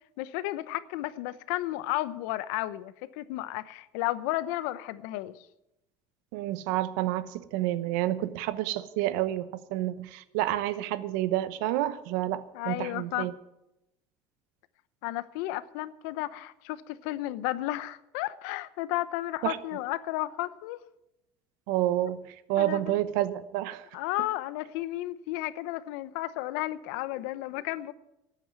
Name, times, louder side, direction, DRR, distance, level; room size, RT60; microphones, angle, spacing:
voice 1, 0.2-5.5 12.5-13.3 15.0-20.8 22.6-23.0 23.9-27.9, left 16 dB, 85° left, 16 dB, 0.8 m, -33 dB
voice 2, 6.3-13.3 19.4-19.6 21.7-23.8, right 14 dB, 90° right, 15 dB, 0.9 m, -29 dB
12.5 x 9.1 x 9.2 m, 0.88 s
cardioid pair, 130°, 9 cm